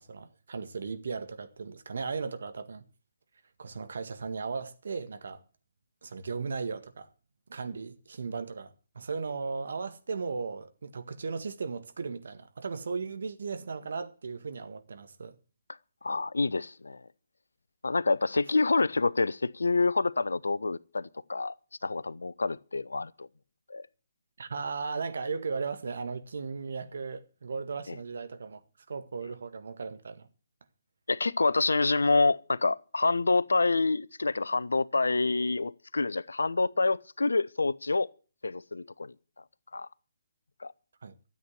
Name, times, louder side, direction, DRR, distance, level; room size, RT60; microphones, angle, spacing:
voice 1, 0.0-2.8 3.6-5.4 6.0-7.1 7.5-15.3 24.4-28.6 28.9-30.3 41.0-41.2, right 4 dB, 65° right, 1.7 m, -36 dB
voice 2, 16.0-17.0 17.8-21.5 21.8-23.3 23.7-23.8 27.9-28.0 31.1-38.1 38.4-39.1 39.7-39.9 40.6-40.7, left 3 dB, 75° left, 0.6 m, -27 dB
13.0 x 8.5 x 8.1 m
figure-of-eight pair, 140°, 0 cm